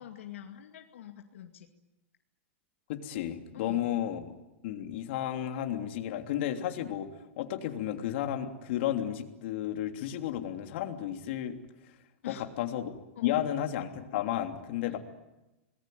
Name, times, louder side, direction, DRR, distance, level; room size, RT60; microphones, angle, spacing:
voice 1, 0.0-1.7 3.5-4.0 12.2-12.6 13.2-13.5 14.9-15.0, left 10 dB, 85° left, 3 dB, 2.3 m, -45 dB
voice 2, 2.9-4.3 4.6-7.1 7.4-11.6 12.2-15.0, left 11 dB, 60° left, 5 dB, 3.2 m, -33 dB
27.5 x 20.0 x 9.4 m, 1.0 s
supercardioid pair, 145°, 7 cm